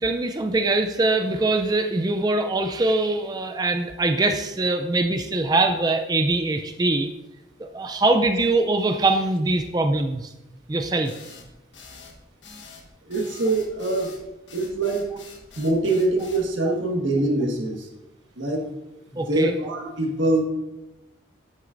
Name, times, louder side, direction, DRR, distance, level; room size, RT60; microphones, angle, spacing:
voice 1, 0.0-7.1 7.6-10.3 10.7-11.1 19.2-19.5, right 2 dB, 20° right, 6 dB, 0.4 m, -22 dB
sound 1, 11.0-16.5, left 5 dB, 70° left, 1.4 m, -45 dB
voice 2, 13.0-14.2 14.5-15.1 15.5-17.9 18.4-18.7 19.1-20.4, right 2 dB, 85° right, 1 dB, 1.6 m, -24 dB
9.8 x 8.3 x 2.6 m, 0.98 s
head